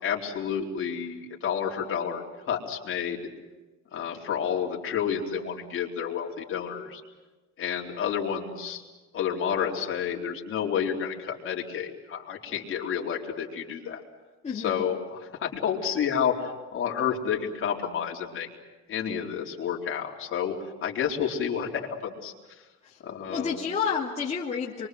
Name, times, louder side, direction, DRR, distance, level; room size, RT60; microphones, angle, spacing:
voice 1, 0.0-3.3 3.9-7.0 7.6-8.8 9.1-14.0 14.5-18.5 18.9-20.5 20.8-22.3 23.0-23.8, left 8 dB, 45° left, -1 dB, 4.2 m, -30 dB
voice 2, 14.4-14.8 23.3-24.9, left 6 dB, 20° left, -5 dB, 2.5 m, -29 dB
27.5 x 24.0 x 7.9 m, 1.2 s
cardioid pair, 165°, 29 cm